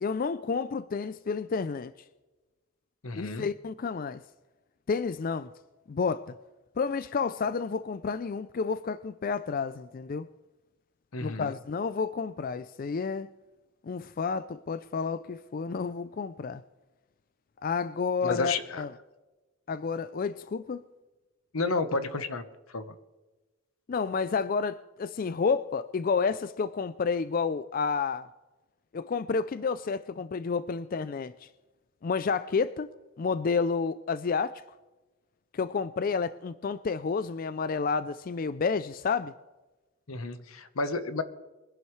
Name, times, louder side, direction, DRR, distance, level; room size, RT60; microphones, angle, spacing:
voice 1, 0.0-1.9 3.2-4.2 4.9-5.5 5.9-6.3 6.8-10.3 11.2-13.3 13.8-16.6 17.6-18.9 19.7-20.8 23.9-28.3 28.9-31.5 32.0-32.9 33.2-34.6 35.5-39.3, left 5 dB, 40° left, 0.4 m, -30 dB
voice 2, 3.0-3.5 11.1-11.5 18.2-18.8 21.5-22.4 22.7-22.9 40.1-41.2, left 3 dB, 85° left, 1.1 m, -31 dB
23.0 x 11.0 x 3.2 m
head